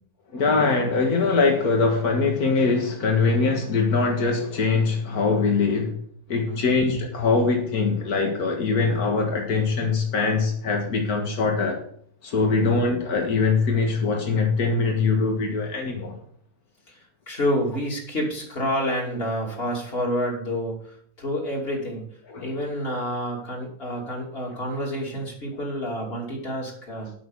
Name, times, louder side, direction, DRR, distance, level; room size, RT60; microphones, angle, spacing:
voice 1, 0.3-6.0 6.3-11.8 12.2-16.1 22.3-22.5, left 4 dB, 85° left, 2 dB, 2.1 m, -22 dB
voice 2, 6.5-6.8 12.4-12.7 16.9-17.0 17.3-22.0 22.4-27.1, equal, 40° left, -1 dB, 3.0 m, -28 dB
8.6 x 6.9 x 7.0 m, 0.62 s
omnidirectional pair, 1.5 m